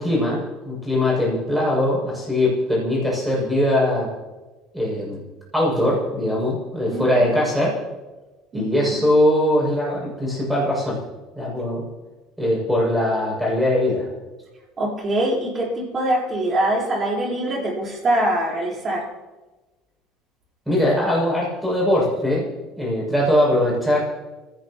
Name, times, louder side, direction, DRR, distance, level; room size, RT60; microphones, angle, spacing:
voice 1, 0.0-4.1 4.7-5.2 5.5-7.8 8.5-11.0 11.3-11.8 12.4-14.1 20.7-22.5 22.8-24.0, left 1 dB, ahead, -4 dB, 7.0 m, -21 dB
voice 2, 14.8-19.1, right 1 dB, 25° right, -3 dB, 4.3 m, -23 dB
29.0 x 16.5 x 3.0 m, 1.2 s
cardioid pair, 160°, 0 cm